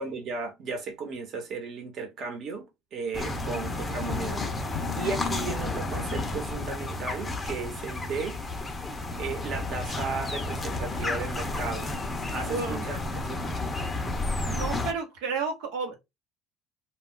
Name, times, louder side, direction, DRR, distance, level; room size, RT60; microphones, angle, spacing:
voice 1, 0.0-2.7 2.9-4.7 4.9-8.4 9.2-11.9 12.3-13.4, right 4 dB, 50° right, 1.2 m, -35 dB
sound 1, 3.1-14.9, left 2 dB, 20° left, 0.6 m, -32 dB
Drum, 4.1-6.1, left 12 dB, 85° left, 0.3 m, -38 dB
voice 2, 12.5-12.9 14.5-16.0, right 4 dB, 80° right, 1.0 m, -32 dB
2.4 x 2.2 x 3.7 m
supercardioid pair, 105°, 0 cm